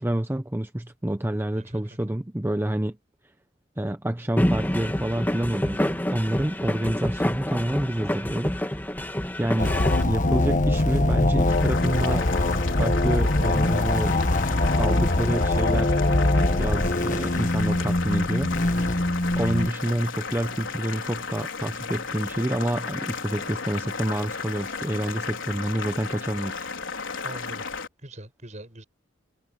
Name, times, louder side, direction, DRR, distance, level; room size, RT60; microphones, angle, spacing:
voice 1, 0.0-3.0 3.8-9.0 9.4-9.7 10.0-14.2 14.8-16.0 16.6-18.5 19.3-26.7, right 1 dB, 10° right, 0.7 m, -28 dB
sound 1, 4.4-10.0, equal, 10° left, 1.6 m, -27 dB
sound 2, 9.6-19.7, left 1 dB, 40° left, 1.3 m, -23 dB
Boiling, 11.5-27.9, left 5 dB, 85° left, 4.4 m, -34 dB
voice 2, 27.2-27.6 28.0-28.8, right 1 dB, 40° right, 7.3 m, -41 dB
head